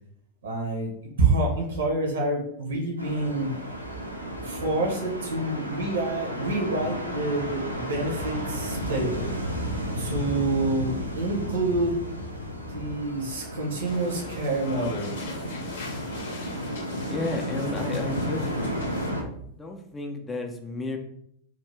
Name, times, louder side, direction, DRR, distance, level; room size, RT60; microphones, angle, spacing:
voice 1, 0.4-0.9 1.2-3.5 4.5-9.2 10.0-12.0 12.7-15.1 19.1-19.2, right 2 dB, 65° right, 0 dB, 0.9 m, -27 dB
sound 1, 3.0-19.2, equal, 90° right, 0.4 m, -33 dB
sound 2, 13.9-19.1, left 3 dB, 60° left, 0.6 m, -40 dB
voice 2, 17.1-18.5 19.5-21.0, left 2 dB, 15° left, 3 dB, 0.4 m, -32 dB
2.6 x 2.4 x 3.3 m, 0.72 s
figure-of-eight pair, 90°, 0 cm